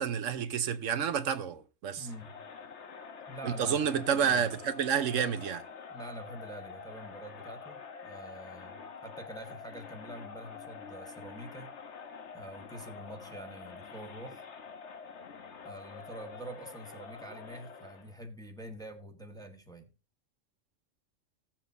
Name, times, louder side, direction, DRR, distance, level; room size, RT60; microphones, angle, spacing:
voice 1, 0.0-2.1 3.4-5.6, right 7 dB, 80° right, 1.2 m, -30 dB
Crowd, 2.0-18.1, left 5 dB, 65° left, 1.3 m, -47 dB
voice 2, 2.0-2.4 3.3-4.5 5.9-11.7 12.3-14.4 15.6-19.9, right 1 dB, 5° left, 1.3 m, -46 dB
16.5 x 7.2 x 2.6 m
omnidirectional pair, 1.3 m